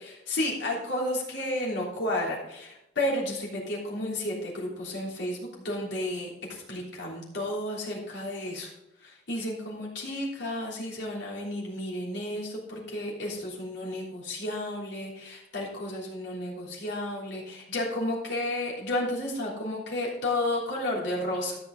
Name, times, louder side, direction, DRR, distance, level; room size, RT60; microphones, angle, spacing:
voice 1, 0.3-8.7 9.0-21.6, left 1 dB, 65° left, -3 dB, 3.3 m, -32 dB
13.5 x 6.2 x 3.8 m, 0.89 s
head